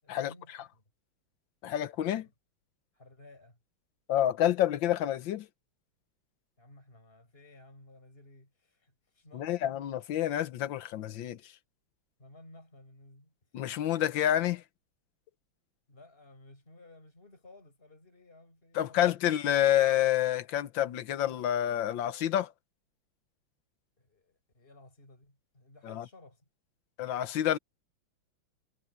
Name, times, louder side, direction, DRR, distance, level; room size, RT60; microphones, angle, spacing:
voice 1, 0.0-0.8 2.1-2.3 2.9-3.6 6.6-9.7 12.2-13.3 15.9-19.3 24.0-26.4, left 2 dB, 25° left, 6.3 m, -56 dB
voice 2, 1.6-2.3 4.1-5.5 9.3-11.5 13.5-14.6 18.7-22.5 25.8-26.0 27.0-27.6, left 11 dB, 70° left, 1.6 m, -28 dB
omnidirectional pair, 2.3 m